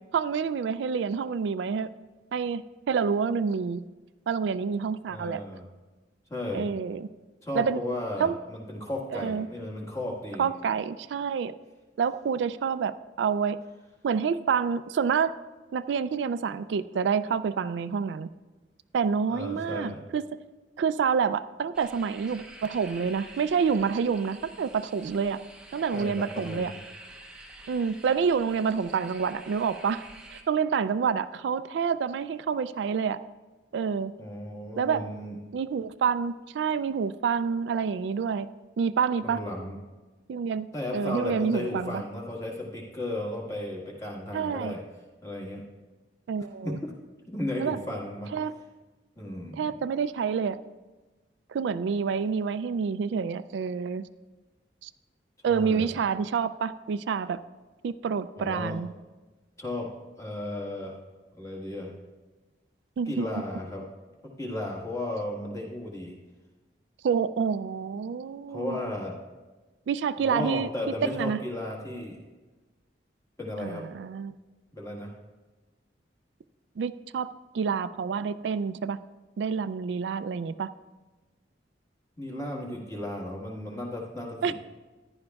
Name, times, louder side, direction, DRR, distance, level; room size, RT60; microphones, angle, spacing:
voice 1, 0.1-1.9 2.3-3.8 4.3-5.4 6.5-7.1 7.6-7.8 8.2-8.4 9.1-9.5 10.4-11.5 12.0-13.6 14.0-15.3 15.7-18.3 18.9-20.3 20.8-25.4 25.7-26.7 27.7-30.0 30.3-33.2 33.7-34.1 34.8-35.0 35.5-38.5 38.8-39.4 40.3-42.0 44.3-44.7 46.3-46.8 47.6-47.8 48.3-48.5 49.6-50.6 51.5-54.0 54.8-54.9 55.4-57.4 57.8-58.9 63.0-63.3 67.0-68.8 69.9-70.7 71.1-71.4 73.6-74.4 76.8-77.3 77.5-79.0 79.4-80.7 84.4-84.5, right 6 dB, 80° right, 13 dB, 0.3 m, -28 dB
voice 2, 5.1-5.7 6.3-6.7 7.4-10.5 19.3-20.0 25.9-26.8 34.2-35.3 39.2-39.8 40.7-44.8 45.2-45.6 46.6-46.9 47.3-48.3 49.2-49.8 55.5-55.9 58.4-58.8 59.6-59.9 60.2-61.0 61.4-61.9 63.1-63.8 64.4-66.2 68.5-69.1 70.2-72.2 73.4-73.9 74.7-75.1 82.2-84.5, left 1 dB, 15° left, -2 dB, 1.5 m, -34 dB
sound 1, 21.7-30.4, right 1 dB, 5° right, 0.7 m, -48 dB
14.5 x 10.5 x 2.3 m, 1.2 s
head